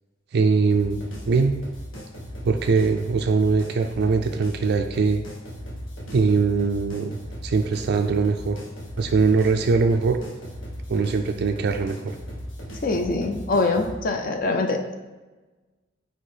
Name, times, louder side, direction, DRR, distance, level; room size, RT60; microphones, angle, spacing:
voice 1, 0.3-1.6 2.4-5.2 6.1-7.1 7.4-8.6 9.0-10.2 10.9-12.1, right 4 dB, 55° right, 5 dB, 0.4 m, -21 dB
sound 1, 0.7-13.9, equal, 80° left, 1.5 m, -37 dB
voice 2, 12.8-15.0, left 3 dB, 45° left, 4 dB, 0.5 m, -24 dB
4.6 x 4.4 x 4.9 m, 1.2 s
head